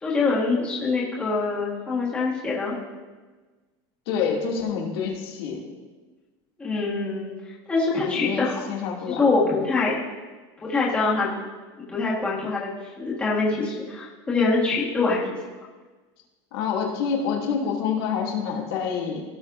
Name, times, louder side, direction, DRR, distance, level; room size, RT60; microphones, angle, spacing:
voice 1, 0.0-2.8 6.6-7.3 7.7-8.6 9.1-10.0 10.6-11.3 11.9-12.7 13.0-15.4, left 3 dB, 10° left, -6 dB, 1.5 m, -24 dB
voice 2, 4.1-5.6 8.0-9.3 16.5-19.2, left 6 dB, 80° left, -2 dB, 2.4 m, -27 dB
17.0 x 6.2 x 2.6 m, 1.3 s
cardioid pair, 180°, 12 cm